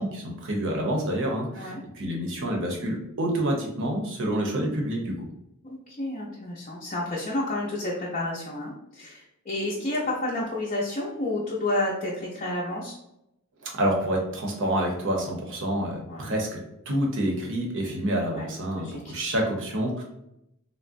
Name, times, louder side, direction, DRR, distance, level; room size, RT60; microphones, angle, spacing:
voice 1, 0.0-5.3 13.6-16.6 16.9-20.0, right 1 dB, 60° right, 0 dB, 0.7 m, -28 dB
voice 2, 5.6-13.0 16.1-16.3 18.3-18.5 18.7-19.0, left 1 dB, 30° left, -5 dB, 0.5 m, -30 dB
3.7 x 2.1 x 2.5 m, 0.84 s
head